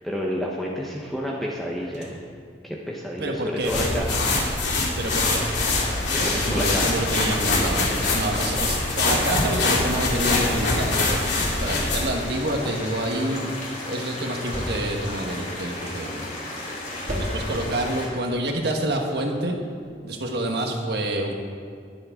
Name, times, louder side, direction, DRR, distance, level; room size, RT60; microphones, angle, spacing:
voice 1, 0.0-2.2 2.6-4.1 6.1-6.9, equal, ahead, -3 dB, 1.0 m, -30 dB
sound 1, 1.6-2.4 3.3-4.3 5.2-6.1 7.0-8.2 8.8-8.9 9.1-9.7 10.6-11.7 12.7-13.5 14.2-15.2 15.5-16.2 16.9-17.9 19.2-19.3 19.8-20.0, equal, 45° right, 2.2 m, -37 dB
voice 2, 3.2-4.0 5.0-5.5 6.2-16.4 17.2-19.6 20.0-21.3, right 1 dB, 65° right, 2 dB, 1.5 m, -28 dB
sound 2, 3.6-12.2, left 3 dB, 80° left, 2.5 m, -24 dB
sound 3, 5.0-18.1, left 1 dB, 45° left, 3.6 m, -35 dB
21.0 x 7.9 x 3.8 m, 2.3 s
head